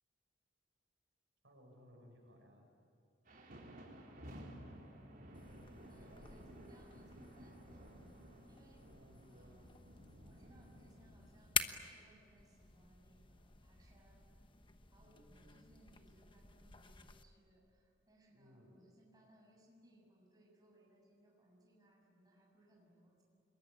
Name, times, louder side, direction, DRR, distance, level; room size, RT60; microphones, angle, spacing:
voice 1, 1.4-2.7 5.9-6.7 8.9-9.6 15.0-15.4 18.3-18.8, equal, 85° right, 1 dB, 6.8 m, -62 dB
voice 2, 3.3-4.3 5.9-8.2 8.5-8.9 9.3-9.7 10.2-14.3 14.9-23.2, right 1 dB, 20° right, -2 dB, 7.3 m, -67 dB
sound 1, 3.3-11.4, equal, 50° right, 4.3 m, -55 dB
sound 2, 5.3-17.2, left 6 dB, 25° left, 1.1 m, -47 dB
27.0 x 22.0 x 9.8 m, 2.6 s
head